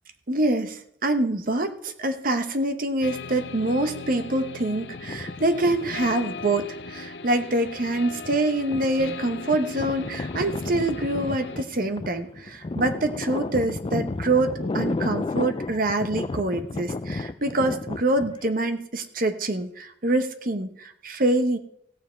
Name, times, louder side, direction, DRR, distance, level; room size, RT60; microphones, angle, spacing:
voice 1, 0.3-21.6, right 2 dB, 55° right, 8 dB, 1.0 m, -25 dB
sound 1, 3.0-11.6, left 4 dB, 80° left, 0.7 m, -38 dB
sound 2, 4.9-7.1 7.7-18.5, left 3 dB, 30° left, 0.4 m, -33 dB
16.5 x 7.3 x 4.5 m, 0.69 s
head